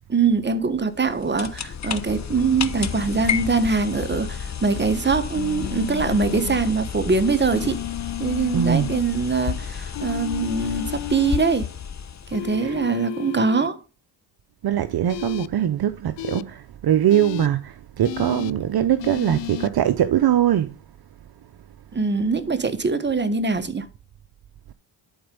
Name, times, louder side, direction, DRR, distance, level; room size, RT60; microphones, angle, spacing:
voice 1, 0.1-7.8 8.2-11.7 12.3-13.8 21.9-23.9, right 4 dB, 25° right, 1.5 m, -23 dB
sound 1, 0.9-12.7, left 7 dB, 35° left, 1.0 m, -32 dB
sound 2, 5.3-6.6 7.5-9.0 9.9-11.5 12.3-13.7 15.1-15.5 16.2-16.4 17.1-17.5 18.0-18.5 19.0-19.7, left 18 dB, 70° left, 0.5 m, -33 dB
voice 2, 8.5-8.9 12.6-12.8 14.6-20.7, right 10 dB, 55° right, 0.8 m, -21 dB
11.5 x 4.4 x 5.4 m
supercardioid pair, 60°, 46 cm